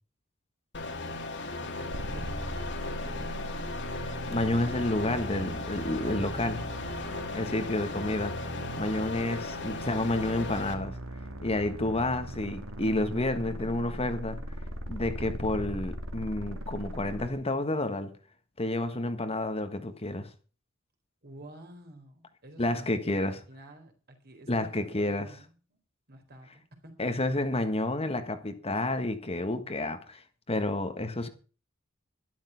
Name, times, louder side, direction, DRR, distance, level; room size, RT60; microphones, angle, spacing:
sound 1, 0.7-10.7, left 2 dB, 60° left, 2.4 m, -37 dB
voice 1, 1.6-3.6 7.0-7.8 8.9-9.3 11.4-11.8 21.2-25.8 26.1-27.1, right 1 dB, 50° right, 4.1 m, -50 dB
sound 2, 1.9-17.3, right 1 dB, 85° right, 3.0 m, -39 dB
voice 2, 3.9-6.7 7.3-8.3 8.8-11.0 11.4-14.4 14.9-18.1 18.6-20.3 22.6-23.4 24.5-25.3 27.0-31.3, left 2 dB, 30° left, 1.5 m, -30 dB
12.5 x 12.0 x 5.7 m
head